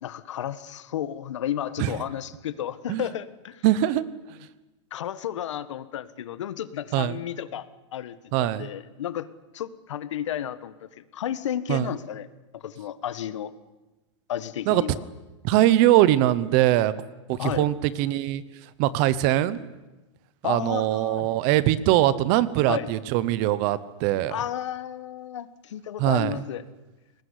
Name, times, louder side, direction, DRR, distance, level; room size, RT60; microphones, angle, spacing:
voice 1, 0.0-3.6 4.9-7.7 7.9-9.3 9.5-12.3 12.5-13.5 14.3-14.9 17.4-17.7 20.4-21.3 22.7-22.9 24.3-26.6, left 10 dB, 70° left, 14 dB, 1.6 m, -32 dB
voice 2, 3.6-4.0 6.9-7.2 8.3-8.7 11.7-11.9 14.7-14.8 15.4-16.9 17.3-18.4 18.8-19.6 20.4-24.4 26.0-26.4, right 14 dB, 30° right, 17 dB, 0.9 m, -22 dB
23.0 x 19.5 x 9.8 m, 1.1 s
supercardioid pair, 175°, 16 cm